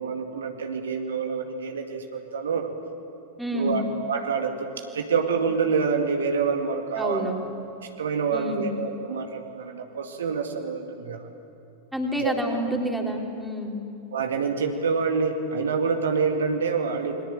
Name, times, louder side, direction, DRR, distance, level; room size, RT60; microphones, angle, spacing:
voice 1, 0.0-2.7 3.5-3.8 4.1-4.7 4.9-7.3 8.0-11.3 12.2-12.3 14.1-17.2, right 5 dB, 65° right, 4 dB, 2.2 m, -27 dB
voice 2, 3.4-3.8 7.0-7.5 8.3-8.7 11.9-13.8, equal, 5° right, 1 dB, 3.6 m, -28 dB
28.5 x 22.0 x 8.9 m, 2.9 s
figure-of-eight pair, 90°, 0 cm